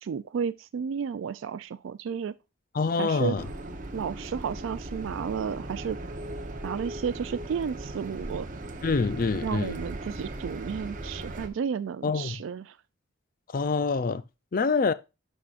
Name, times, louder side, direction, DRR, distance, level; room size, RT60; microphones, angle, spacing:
voice 1, 0.0-2.3 3.0-3.4 3.9-6.0 6.6-8.5 9.4-12.8, right 6 dB, 75° right, 0.3 m, -32 dB
voice 2, 2.7-3.4 8.8-9.8 12.0-12.4 13.5-14.2 14.5-14.9, left 4 dB, 45° left, 0.4 m, -26 dB
sound 1, 3.3-11.5, right 1 dB, 40° right, 0.9 m, -38 dB
11.5 x 4.8 x 2.5 m
head